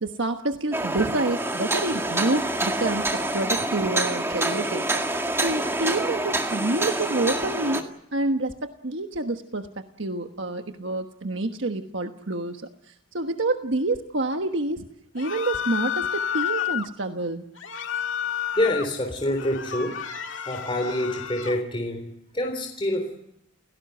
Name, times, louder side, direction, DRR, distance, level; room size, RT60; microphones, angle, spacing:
voice 1, 0.0-14.9 15.1-17.4, right 2 dB, 70° right, 6 dB, 1.3 m, -28 dB
sound 1, 0.7-7.8, right 2 dB, 10° right, 2.0 m, -27 dB
sound 2, 15.2-16.9 17.6-18.9 19.3-21.6, left 9 dB, 70° left, 2.1 m, -30 dB
voice 2, 18.6-20.0 20.5-23.2, left 1 dB, 25° left, 3 dB, 3.6 m, -27 dB
30.0 x 17.5 x 7.9 m, 0.80 s
head